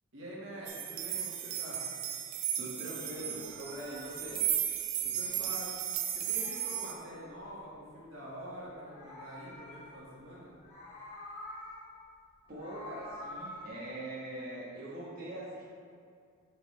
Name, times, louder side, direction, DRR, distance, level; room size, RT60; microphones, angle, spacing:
voice 1, 0.1-1.8 5.0-5.7 6.1-10.6, equal, 70° right, -6 dB, 1.6 m, -46 dB
sound 1, 0.7-6.9, right 10 dB, 85° right, 0.7 m, -35 dB
voice 2, 2.6-4.4 12.5-15.6, right 1 dB, 45° right, -8 dB, 1.4 m, -42 dB
Meow, 3.3-5.8 6.1-7.8 8.6-10.2 10.5-12.0 12.3-13.7, left 1 dB, 30° left, 1.6 m, -48 dB
7.9 x 5.5 x 3.2 m, 2.2 s
head